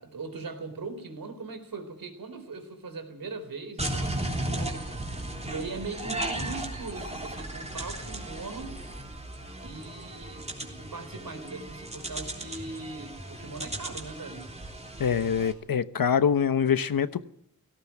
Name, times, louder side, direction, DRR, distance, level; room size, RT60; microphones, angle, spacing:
voice 1, 0.0-8.8 9.6-14.5, right 3 dB, 80° right, 4.2 m, -40 dB
sound 1, 3.8-15.5, right 1 dB, 20° right, 3.4 m, -36 dB
voice 2, 15.0-17.3, left 7 dB, 80° left, 1.0 m, -25 dB
17.5 x 17.0 x 9.2 m
wide cardioid pair, 115°, 34 cm